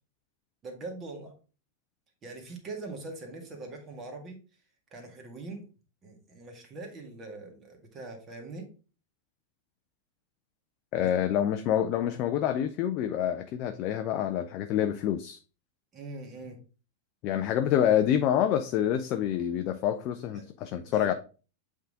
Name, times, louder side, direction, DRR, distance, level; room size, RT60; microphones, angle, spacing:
voice 1, 0.6-1.3 2.2-4.4 4.9-5.7 6.0-8.7 11.0-11.1 15.9-16.6 20.3-21.1, right 3 dB, 25° right, 3 dB, 1.8 m, -42 dB
voice 2, 10.9-15.4 17.2-21.1, left 10 dB, 40° left, 8 dB, 0.4 m, -27 dB
7.8 x 3.7 x 3.6 m, 0.35 s
figure-of-eight pair, 90°, 0 cm